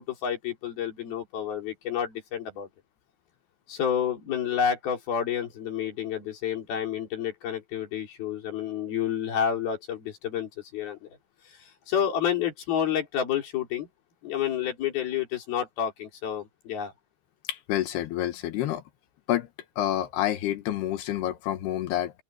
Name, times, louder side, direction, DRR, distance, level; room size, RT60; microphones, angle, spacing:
voice 1, 0.0-2.7 3.7-11.1 11.5-13.9 14.2-16.9, left 8 dB, 70° left, 5.7 m, -29 dB
voice 2, 17.5-18.8 19.3-19.5 19.8-22.1, left 12 dB, 85° left, 3.5 m, -28 dB
open air
omnidirectional pair, 4.6 m